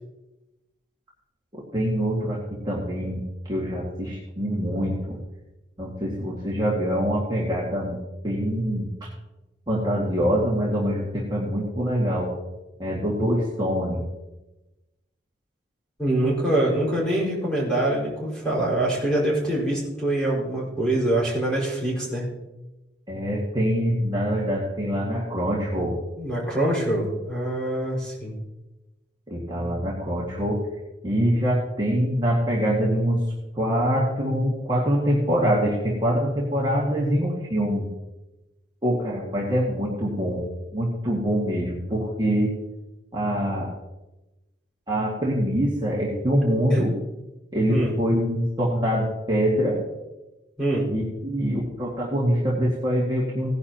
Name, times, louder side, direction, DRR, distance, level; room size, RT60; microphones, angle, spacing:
voice 1, 1.5-2.4 2.6-5.2 5.8-8.0 8.2-9.1 9.7-12.3 12.8-14.1 23.1-26.0 29.3-30.6 31.0-33.2 33.6-37.9 38.8-40.4 40.7-42.5 43.1-43.8 44.9-46.9 47.5-49.8 50.9-53.5, equal, 25° right, -6 dB, 2.0 m, -24 dB
voice 2, 16.0-22.3 26.2-28.3 46.7-46.9 47.7-47.9 50.6-50.9, right 1 dB, 5° left, -5 dB, 5.1 m, -24 dB
17.5 x 10.5 x 3.0 m, 1.0 s
head